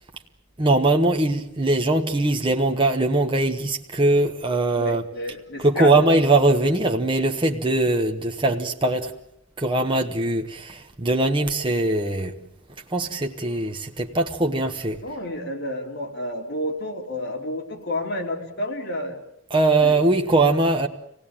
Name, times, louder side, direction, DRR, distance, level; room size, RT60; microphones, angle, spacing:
voice 1, 0.6-5.0 5.6-9.1 9.6-12.3 12.9-15.0 19.5-20.9, right 2 dB, 25° right, 1.1 m, -21 dB
voice 2, 4.7-6.0 15.0-19.2 19.8-19.9, left 1 dB, 55° left, 3.4 m, -30 dB
26.0 x 18.0 x 8.8 m
head